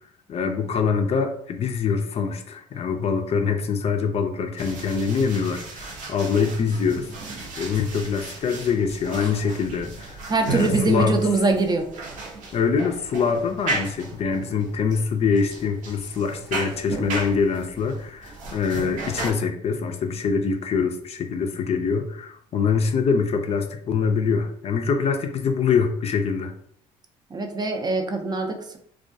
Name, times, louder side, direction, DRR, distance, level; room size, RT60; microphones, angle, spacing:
voice 1, 0.3-11.2 12.5-26.5, left 5 dB, 45° left, 6 dB, 0.4 m, -24 dB
sound 1, 4.6-19.3, right 3 dB, 65° right, 0.7 m, -35 dB
voice 2, 10.3-11.9 27.3-28.8, right 3 dB, 30° right, 5 dB, 0.5 m, -23 dB
2.2 x 2.1 x 2.6 m, 0.65 s
supercardioid pair, 65°, 14 cm